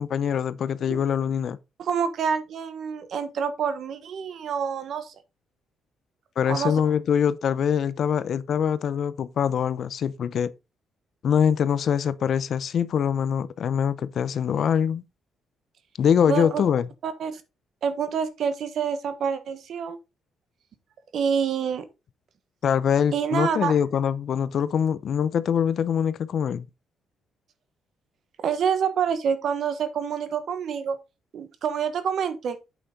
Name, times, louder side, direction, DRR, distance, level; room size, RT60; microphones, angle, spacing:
voice 1, 0.0-1.6 6.4-10.5 11.2-15.0 16.0-16.9 22.6-26.7, left 8 dB, 60° left, 0.6 m, -24 dB
voice 2, 1.8-5.1 6.5-6.7 16.3-16.6 17.0-17.4 17.8-20.0 21.1-21.8 23.1-23.7 28.4-31.0 31.3-32.6, right 7 dB, 65° right, 1.3 m, -27 dB
8.3 x 6.3 x 3.7 m
cardioid pair, 90°, 0 cm